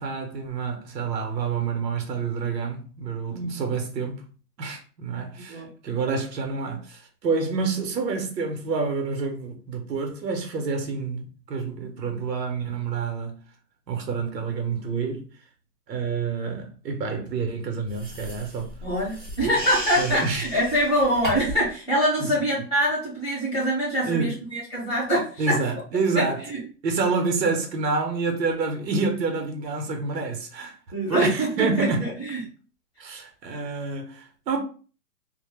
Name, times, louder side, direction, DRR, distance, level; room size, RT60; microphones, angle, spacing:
voice 1, 0.0-4.2 4.6-13.4 13.9-15.2 15.9-18.7 19.4-19.5 20.0-20.5 22.2-22.3 24.0-24.4 25.4-26.4 26.8-30.8 31.1-32.0 33.0-34.6, right 4 dB, 80° right, 0.8 m, -28 dB
voice 2, 3.3-3.6 5.5-5.7 18.8-25.6 26.1-26.6 30.9-32.4, equal, 5° left, 0.7 m, -24 dB
sound 1, 17.9-21.7, right 1 dB, 35° right, 0.5 m, -35 dB
2.2 x 2.0 x 3.1 m
hypercardioid pair, 180°, 49 cm